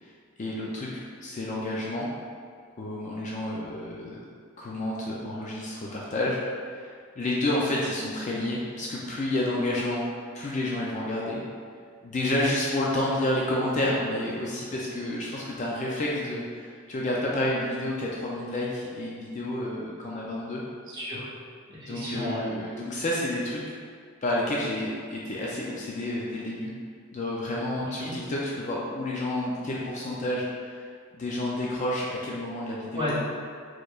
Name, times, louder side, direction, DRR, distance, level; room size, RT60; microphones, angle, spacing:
voice 1, 0.4-0.9 1.2-2.1 2.8-4.2 4.6-6.4 6.7-10.1 10.3-11.4 12.0-20.6 21.8-23.6 24.2-26.7 27.1-30.8 31.1-33.2, left 1 dB, 35° left, -4 dB, 0.4 m, -30 dB
voice 2, 20.9-21.3 21.8-22.4 28.0-28.1 32.9-33.2, left 1 dB, 20° right, -10 dB, 1.1 m, -31 dB
4.4 x 3.1 x 2.3 m, 2.1 s
head